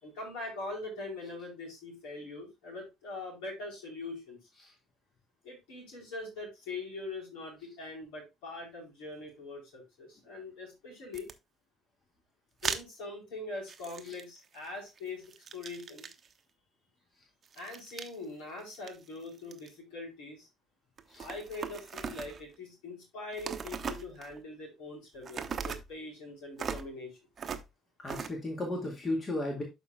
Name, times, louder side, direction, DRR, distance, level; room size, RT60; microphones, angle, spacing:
voice 1, 0.0-4.4 5.4-11.3 12.6-15.3 15.5-16.1 17.5-20.5 21.2-27.2, left 2 dB, 65° left, 0 dB, 4.0 m, -42 dB
sound 1, 11.1-11.3 12.6-12.8 13.7-14.7 15.0-16.3 17.4-18.1 18.6-19.7 21.0-22.5 23.3-24.4 25.2-25.9 26.6-26.9 27.4-27.7 28.1-28.3, right 6 dB, 40° right, 0.9 m, -39 dB
voice 2, 28.0-29.6, left 1 dB, 35° left, 1 dB, 2.0 m, -34 dB
12.0 x 4.7 x 2.3 m, 0.23 s
figure-of-eight pair, 50°, 0 cm